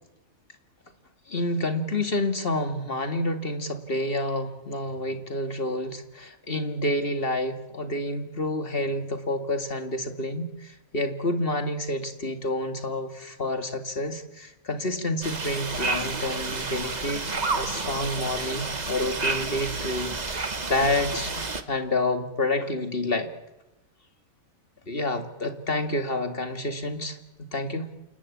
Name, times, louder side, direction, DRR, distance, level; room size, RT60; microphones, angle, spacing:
voice 1, 1.3-17.2 17.5-23.3 24.9-27.9, left 1 dB, 35° left, 7 dB, 2.3 m, -29 dB
sound 1, 15.2-21.6, right 3 dB, 30° right, 1.4 m, -30 dB
28.0 x 20.0 x 8.5 m, 0.98 s
omnidirectional pair, 1.6 m